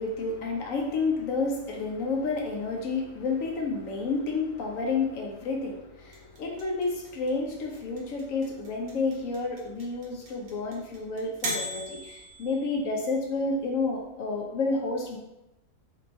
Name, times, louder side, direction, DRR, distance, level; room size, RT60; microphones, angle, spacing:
voice 1, 0.0-15.2, left 3 dB, 75° left, 0 dB, 1.0 m, -30 dB
sound 1, 6.1-13.1, right 1 dB, 90° right, 1.4 m, -37 dB
4.2 x 2.2 x 3.9 m, 0.93 s
omnidirectional pair, 1.4 m